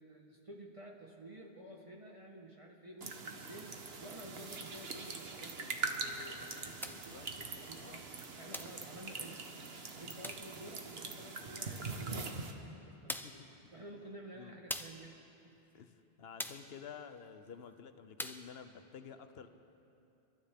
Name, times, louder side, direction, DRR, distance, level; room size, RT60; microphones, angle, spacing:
voice 1, 0.0-9.4 10.0-13.4 13.7-15.2 15.4-15.8, right 1 dB, 35° right, -1 dB, 1.2 m, -52 dB
sound 1, 3.0-12.5, right 4 dB, 75° right, 1.3 m, -43 dB
voice 2, 6.8-7.3 7.8-8.1 13.1-13.5 14.4-14.6 15.7-19.5, left 7 dB, 80° left, 9 dB, 1.0 m, -51 dB
sound 2, 6.8-7.1 8.5-8.8 10.2-10.5 12.3-12.4 13.1-13.5 14.7-15.1 16.4-16.7 18.2-18.5, equal, 5° left, 0.4 m, -42 dB
29.0 x 13.0 x 3.6 m, 2.8 s
omnidirectional pair, 1.0 m